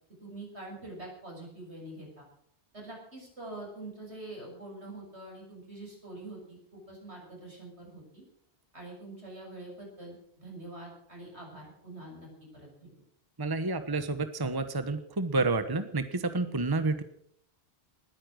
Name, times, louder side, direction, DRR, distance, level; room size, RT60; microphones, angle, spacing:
voice 1, 0.2-2.3 2.7-8.2 8.7-12.3 12.5-12.9, right 2 dB, 80° right, -1 dB, 6.9 m, -45 dB
voice 2, 13.4-17.0, right 3 dB, 20° right, 10 dB, 1.1 m, -29 dB
20.0 x 10.0 x 6.4 m, 0.66 s
omnidirectional pair, 1.1 m